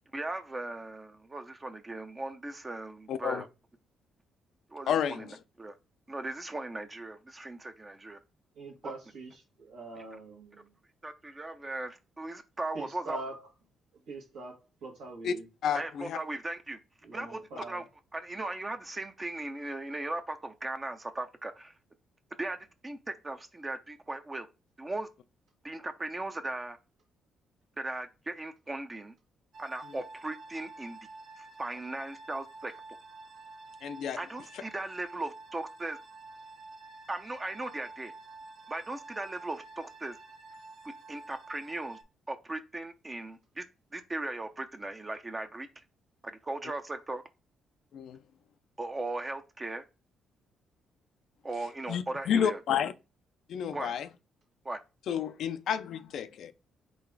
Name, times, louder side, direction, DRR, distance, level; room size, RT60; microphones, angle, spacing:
voice 1, 0.1-3.5 4.7-5.7 6.1-8.2 8.8-8.9 11.0-13.2 15.7-16.8 17.1-17.8 18.1-21.8 22.4-22.6 22.8-24.5 24.8-25.1 25.6-26.8 27.8-29.1 29.6-31.0 31.4-32.7 34.2-36.0 37.1-38.1 38.7-40.2 41.1-42.0 42.3-43.6 43.9-45.7 46.2-47.2 48.8-49.8 51.4-52.6 53.7-54.0 54.6-54.8, right 2 dB, 25° right, 0.5 m, -38 dB
voice 2, 3.1-3.4 4.9-5.3 15.2-15.3 15.6-16.2 33.8-34.2 47.9-48.2 51.9-52.9 53.5-54.1 55.1-56.5, left 8 dB, 70° left, 0.3 m, -30 dB
voice 3, 8.6-9.3 9.6-10.7 12.7-13.4 14.1-14.5 14.8-15.5 17.0-17.8, right 3 dB, 80° right, 1.2 m, -43 dB
sound 1, 29.5-42.0, right 3 dB, 60° right, 0.8 m, -50 dB
3.9 x 2.4 x 4.5 m
cardioid pair, 90°, 0 cm